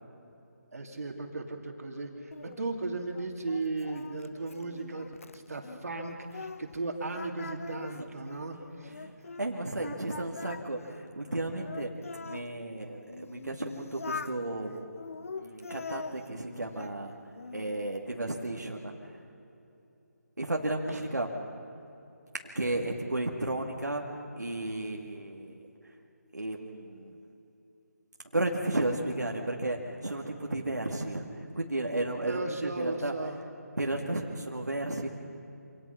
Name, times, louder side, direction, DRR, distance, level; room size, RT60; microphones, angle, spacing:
voice 1, 0.7-8.9 9.8-9.9 20.9-21.0 32.3-33.4, right 3 dB, 60° right, 3 dB, 2.9 m, -36 dB
Singing, 2.3-6.8 7.1-9.5 9.8-12.5 13.1-14.4 15.0-17.0 17.3-17.9, left 4 dB, 55° left, 0.8 m, -43 dB
voice 2, 8.9-11.9 12.2-14.8 15.3-17.1 17.5-18.9 20.4-21.3 22.5-25.6 26.3-27.2 28.3-33.1 33.8-35.1, right 2 dB, 90° right, 1 dB, 2.3 m, -33 dB
26.0 x 18.5 x 5.9 m, 2.8 s
figure-of-eight pair, 160°, 9 cm